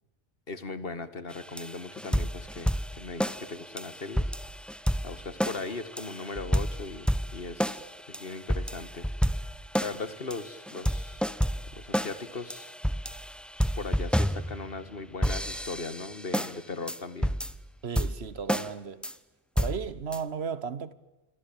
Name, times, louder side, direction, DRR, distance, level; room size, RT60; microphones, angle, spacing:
voice 1, 0.5-4.3 5.0-9.1 9.8-11.3 11.7-12.7 13.8-17.4, left 3 dB, 65° left, 2.0 m, -39 dB
sound 1, 1.3-14.9 15.2-16.5 16.9-17.0 17.2-17.6 18.0-18.7 19.0-19.1 19.6-20.2, equal, ahead, 0.9 m, -30 dB
voice 2, 17.8-19.0 19.5-20.9, right 6 dB, 85° right, 1.4 m, -35 dB
27.5 x 23.0 x 8.8 m
omnidirectional pair, 1.0 m